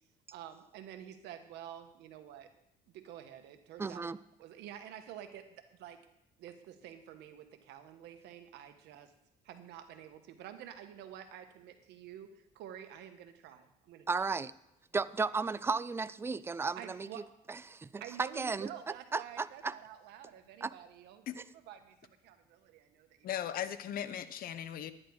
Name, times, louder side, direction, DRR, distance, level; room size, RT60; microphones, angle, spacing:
voice 1, 0.3-2.5 2.9-4.1 4.4-6.0 6.4-9.1 9.4-14.3 15.2-15.3 16.8-17.3 18.0-23.3, right 10 dB, 85° right, 7 dB, 1.3 m, -49 dB
voice 2, 3.8-4.2 14.1-14.5 14.9-17.1 17.5-18.7 19.1-19.7 20.6-20.7, right 4 dB, 15° right, 16 dB, 0.4 m, -34 dB
voice 3, 23.2-24.9, left 10 dB, 60° left, 13 dB, 0.8 m, -38 dB
11.0 x 10.0 x 4.8 m, 0.83 s
cardioid pair, 110°, 17 cm